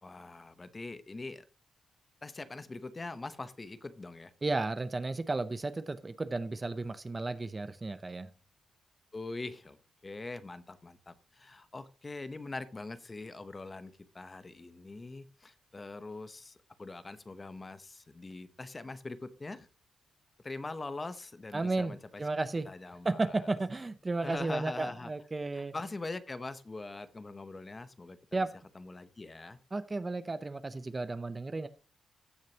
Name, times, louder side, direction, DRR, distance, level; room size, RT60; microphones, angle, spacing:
voice 1, 0.0-1.4 2.2-4.3 9.1-9.8 10.0-19.7 20.4-22.2 22.6-23.4 24.2-25.1 25.5-28.4 28.7-29.6, left 3 dB, 20° left, 13 dB, 0.8 m, -43 dB
voice 2, 4.4-8.3 21.5-22.7 23.0-25.7 28.3-28.5 29.7-31.7, right 3 dB, 20° right, 13 dB, 0.6 m, -33 dB
15.5 x 6.5 x 2.8 m, 0.34 s
wide cardioid pair, 155°, 0 cm